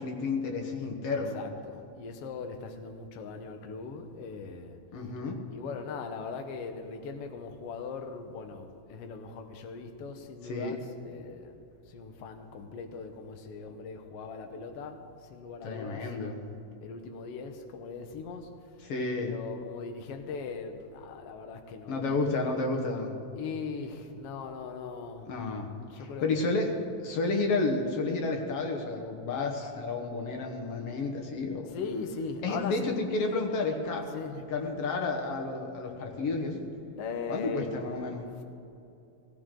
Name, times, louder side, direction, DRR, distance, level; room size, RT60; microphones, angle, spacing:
voice 1, 0.0-1.4 4.9-5.4 10.4-10.8 15.6-16.4 18.8-19.4 21.9-23.2 25.3-25.7 26.0-26.7 27.0-31.7 32.4-34.1 34.5-36.6 37.3-38.3, left 3 dB, 55° left, 2 dB, 1.8 m, -31 dB
voice 2, 1.1-4.8 5.5-11.5 11.9-15.0 15.3-16.1 16.8-18.8 19.1-22.2 23.4-25.3 25.9-26.6 31.7-33.0 33.9-34.4 37.0-37.7 38.4-38.5, left 5 dB, 80° left, 5 dB, 1.3 m, -40 dB
17.5 x 17.5 x 3.8 m, 2.8 s
omnidirectional pair, 4.1 m